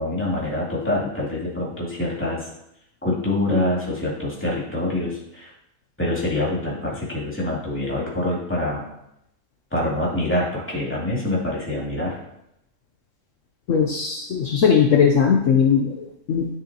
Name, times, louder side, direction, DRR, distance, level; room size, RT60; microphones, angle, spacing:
voice 1, 0.0-2.5 3.0-5.5 6.0-8.9 9.7-12.2, left 1 dB, 10° left, -6 dB, 2.5 m, -25 dB
voice 2, 13.7-16.5, left 7 dB, 65° left, 1 dB, 1.1 m, -19 dB
10.5 x 6.8 x 2.9 m, 0.81 s
omnidirectional pair, 1.5 m